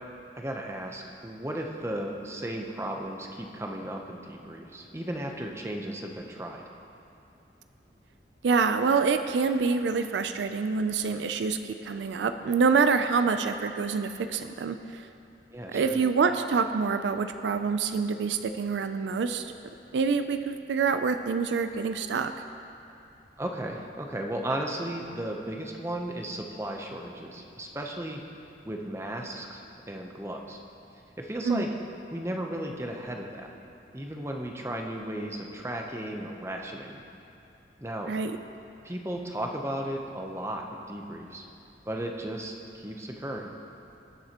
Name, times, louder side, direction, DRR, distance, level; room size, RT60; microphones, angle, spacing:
voice 1, 0.4-6.6 15.5-16.0 23.4-28.2 28.6-30.6 31.2-31.7 32.1-33.5 33.9-37.0 37.8-38.1 38.8-41.4 41.9-43.5, right 1 dB, 15° right, 1 dB, 0.7 m, -35 dB
voice 2, 8.4-15.1 15.7-19.5 19.9-22.3 31.5-31.6 38.1-38.4, right 5 dB, 80° right, 9 dB, 0.4 m, -26 dB
19.0 x 7.3 x 2.9 m, 2.7 s
head